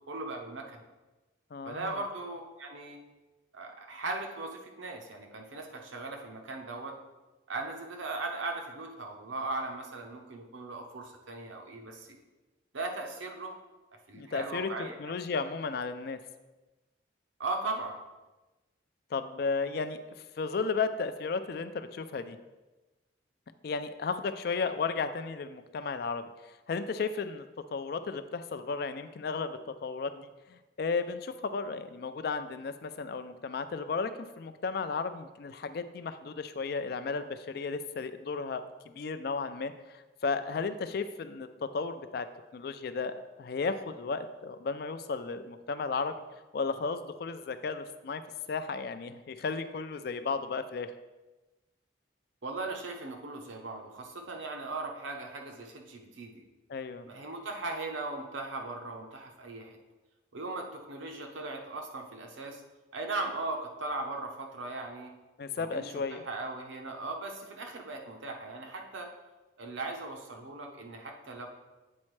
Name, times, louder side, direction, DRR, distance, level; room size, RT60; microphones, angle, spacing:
voice 1, 0.1-0.8 1.6-3.0 3.5-6.9 7.5-12.2 12.7-13.6 14.1-14.9 17.4-17.9 52.4-56.4 57.0-59.8 60.3-62.6 62.9-65.1 65.5-69.1 69.6-71.5, right 2 dB, 80° right, 3 dB, 0.9 m, -38 dB
voice 2, 1.5-2.0 14.1-14.7 15.0-16.2 19.1-20.0 20.4-22.4 23.6-26.3 26.7-27.4 27.7-34.1 34.4-42.3 42.5-46.1 46.5-48.2 48.5-50.9 56.7-57.0 65.4-66.2, left 4 dB, 50° left, 11 dB, 0.3 m, -34 dB
8.4 x 4.2 x 3.2 m, 1.1 s
head